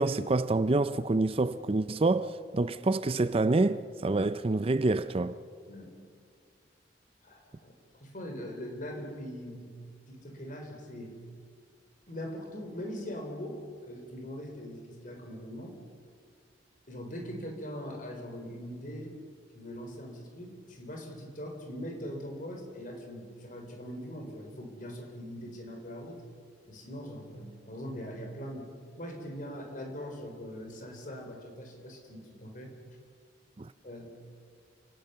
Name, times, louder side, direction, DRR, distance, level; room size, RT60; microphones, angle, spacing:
voice 1, 0.0-5.4 33.6-33.7, right 2 dB, 30° right, 0.5 m, -27 dB
voice 2, 7.2-7.7 8.0-9.7 10.1-11.2 12.1-13.6 13.9-15.7 16.9-19.1 19.5-26.2 26.7-32.7 33.8-34.2, equal, 45° left, 4.1 m, -41 dB
29.5 x 18.0 x 6.8 m
head